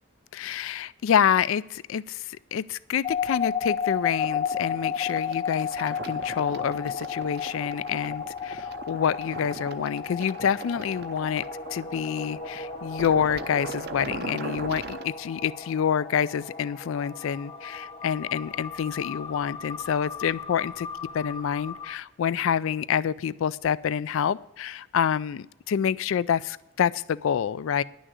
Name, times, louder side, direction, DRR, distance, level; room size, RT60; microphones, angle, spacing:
voice 1, 0.3-20.9 21.1-27.8, left 8 dB, 70° left, 19 dB, 0.3 m, -27 dB
sound 1, 3.0-22.0, left 6 dB, 30° left, 0.8 m, -34 dB
sound 2, 4.2-15.0, right 4 dB, 50° right, 0.6 m, -40 dB
10.5 x 6.3 x 8.0 m, 0.91 s
head